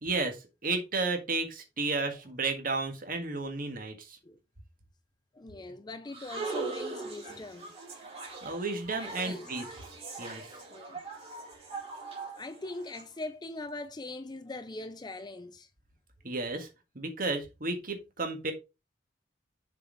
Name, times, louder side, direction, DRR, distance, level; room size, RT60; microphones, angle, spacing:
voice 1, 0.0-4.2 8.4-9.6 10.2-10.5 16.2-16.7 16.9-18.5, right 3 dB, 50° right, 1.7 m, -32 dB
voice 2, 5.3-7.7 8.4-8.5 9.0-9.5 10.7-11.0 12.4-15.7, left 2 dB, 25° left, 0.5 m, -41 dB
sound 1, 6.1-13.0, right 3 dB, 35° right, 3.9 m, -40 dB
7.2 x 4.3 x 4.6 m
head